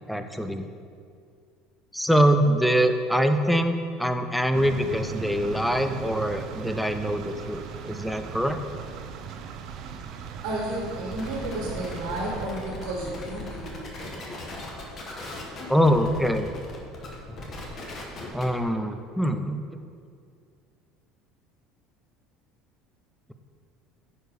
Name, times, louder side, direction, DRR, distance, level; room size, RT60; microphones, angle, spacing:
voice 1, 0.1-0.7 1.9-8.6 15.3-15.4 15.7-16.5 18.3-19.6, equal, ahead, 7 dB, 0.5 m, -24 dB
sound 1, 4.5-12.5, right 7 dB, 55° right, 0.6 m, -38 dB
voice 2, 10.4-14.3, right 1 dB, 85° right, -3 dB, 1.7 m, -32 dB
sound 2, 11.1-18.6, left 2 dB, 35° left, 1.5 m, -38 dB
9.8 x 4.6 x 4.8 m, 2.3 s
cardioid pair, 130°, 0 cm